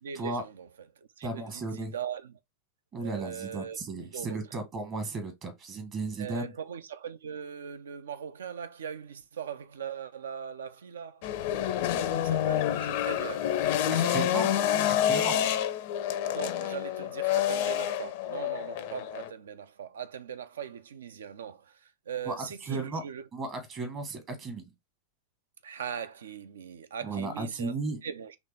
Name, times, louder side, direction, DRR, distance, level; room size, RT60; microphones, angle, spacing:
voice 1, 0.0-2.4 3.0-4.4 6.2-11.2 12.0-14.4 16.3-23.3 25.6-27.7 28.0-28.4, right 8 dB, 65° right, 0.5 m, -40 dB
voice 2, 1.2-1.9 2.9-6.5 13.9-14.5 14.9-15.4 22.3-23.0 23.3-24.6 27.0-28.0, right 3 dB, 30° right, 1.2 m, -35 dB
sound 1, 11.2-19.3, left 11 dB, 50° left, 0.5 m, -28 dB
4.1 x 3.0 x 3.3 m
figure-of-eight pair, 90°, 0 cm